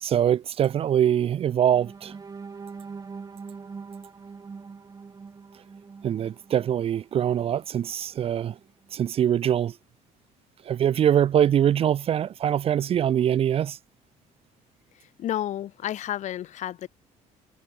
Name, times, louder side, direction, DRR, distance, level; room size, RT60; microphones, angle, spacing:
voice 1, 0.0-2.1 6.0-8.6 8.9-9.7 10.6-13.8, right 10 dB, 45° right, 0.7 m, -23 dB
sound 1, 1.7-7.7 8.1-8.3 8.7-8.9, right 5 dB, 25° right, 6.0 m, -43 dB
voice 2, 15.2-16.9, left 12 dB, 55° left, 3.5 m, -31 dB
cardioid pair, 125°, 14 cm